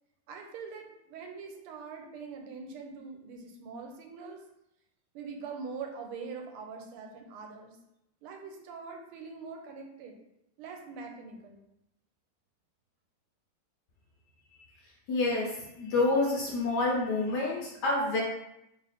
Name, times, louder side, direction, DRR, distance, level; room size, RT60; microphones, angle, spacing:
voice 1, 0.3-4.4 5.1-7.8 8.2-10.2 10.6-11.6, right 5 dB, 85° right, 3 dB, 1.5 m, -43 dB
voice 2, 15.1-18.2, left 2 dB, 65° left, -3 dB, 1.0 m, -28 dB
3.4 x 2.5 x 4.1 m, 0.84 s
omnidirectional pair, 2.4 m